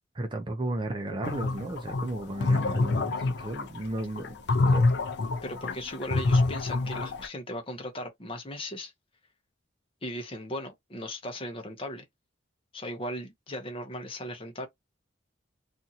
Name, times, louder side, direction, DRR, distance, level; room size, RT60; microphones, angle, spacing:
voice 1, 0.2-4.8, right 1 dB, 25° right, 0.5 m, -34 dB
sound 1, 1.2-7.3, left 3 dB, 60° left, 0.4 m, -26 dB
voice 2, 5.4-8.9 10.0-12.0 12.7-14.7, left 1 dB, 30° left, 0.7 m, -37 dB
2.6 x 2.5 x 2.7 m
head